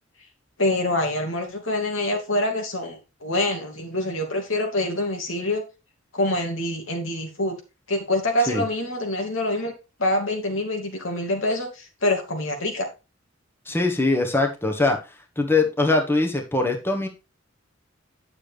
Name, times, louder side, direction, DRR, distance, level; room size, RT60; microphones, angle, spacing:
voice 1, 0.6-5.6 6.1-7.6 7.9-9.7 10.0-12.9, left 1 dB, 85° left, 2 dB, 2.7 m, -25 dB
voice 2, 13.7-15.0 15.4-17.1, left 2 dB, 10° left, 3 dB, 1.4 m, -22 dB
9.9 x 6.8 x 3.5 m, 0.28 s
head